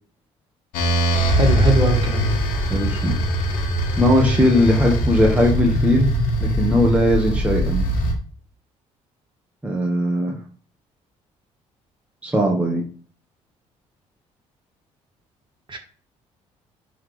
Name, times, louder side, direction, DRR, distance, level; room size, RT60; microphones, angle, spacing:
sound 1, 0.7-8.1, equal, 80° left, 1.6 m, -21 dB
voice 1, 1.3-2.4 15.7-15.8, right 2 dB, 35° right, 2 dB, 2.3 m, -22 dB
voice 2, 2.7-3.2 4.0-6.1 6.4-7.9 9.6-10.4 12.2-12.8, left 1 dB, 10° right, -1 dB, 1.5 m, -19 dB
10.5 x 3.9 x 3.4 m, 0.42 s
supercardioid pair, 65°, 14 cm